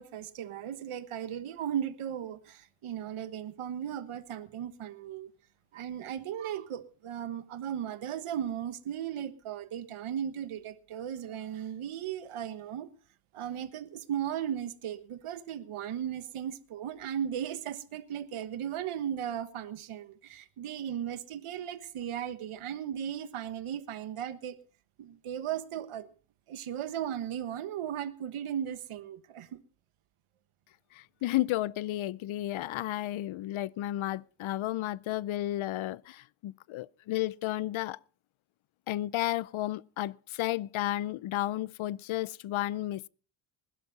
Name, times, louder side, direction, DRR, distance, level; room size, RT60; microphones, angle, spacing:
voice 1, 0.0-5.3 5.7-12.9 13.3-24.6 25.0-26.1 26.5-29.5, right 9 dB, 85° right, 1.4 m, -36 dB
voice 2, 30.9-38.0 38.9-43.1, left 15 dB, 75° left, 0.6 m, -32 dB
20.5 x 12.0 x 4.1 m
cardioid pair, 130°, 49 cm